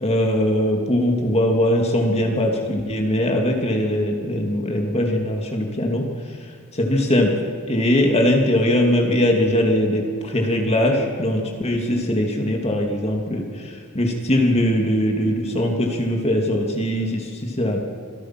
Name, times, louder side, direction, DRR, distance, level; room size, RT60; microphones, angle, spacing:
voice 1, 0.0-6.1 6.7-7.4 7.7-17.8, left 1 dB, 30° left, 1 dB, 2.6 m, -21 dB
26.5 x 17.5 x 6.0 m, 2.1 s
head